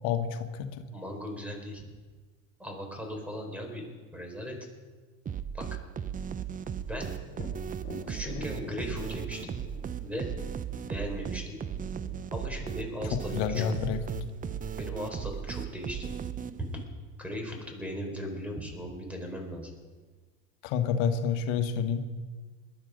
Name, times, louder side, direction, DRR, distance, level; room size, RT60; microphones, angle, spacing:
voice 1, 0.0-0.8 13.1-14.0 20.6-22.0, left 7 dB, 65° left, 6 dB, 1.6 m, -29 dB
voice 2, 0.9-1.9 2.6-3.8 4.1-4.6 5.5-5.6 6.7-7.1 8.1-9.5 10.0-10.3 10.8-11.6 12.3-13.7 14.8-16.1 16.7-16.8 17.2-19.7, equal, 5° right, 2 dB, 4.8 m, -38 dB
sound 1, 5.3-16.9, right 8 dB, 20° right, 0.6 m, -37 dB
Thunder, 7.3-15.0 18.6-18.7 19.2-20.1, left 2 dB, 25° left, 3.7 m, -47 dB
21.0 x 12.0 x 5.3 m, 1.4 s
hypercardioid pair, 100°, 42 cm